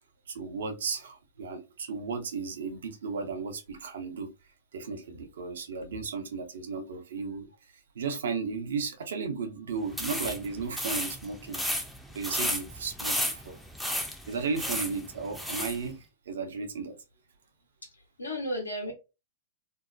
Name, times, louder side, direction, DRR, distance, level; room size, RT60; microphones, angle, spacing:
voice 1, 0.3-4.3 4.7-7.5 7.9-11.6 12.1-13.6 14.3-16.0 16.3-17.0, right 5 dB, 70° right, 0.7 m, -34 dB
sound 1, 9.9-15.8, equal, ahead, 0.5 m, -33 dB
voice 2, 17.8-18.9, equal, 90° left, 1.0 m, -34 dB
2.7 x 2.1 x 2.5 m
hypercardioid pair, 105°, 0 cm